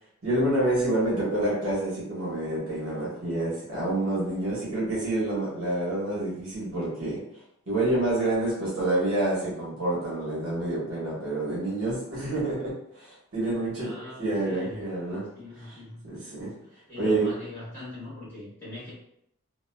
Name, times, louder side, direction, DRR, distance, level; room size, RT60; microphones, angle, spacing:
voice 1, 0.2-7.2 7.7-15.2 15.6-15.7 16.0-16.5 17.0-17.3, right 1 dB, 60° right, -7 dB, 1.3 m, -28 dB
voice 2, 13.7-14.8 15.3-16.0 16.6-18.9, left 2 dB, 10° left, -11 dB, 1.4 m, -41 dB
2.9 x 2.4 x 2.3 m, 0.74 s
head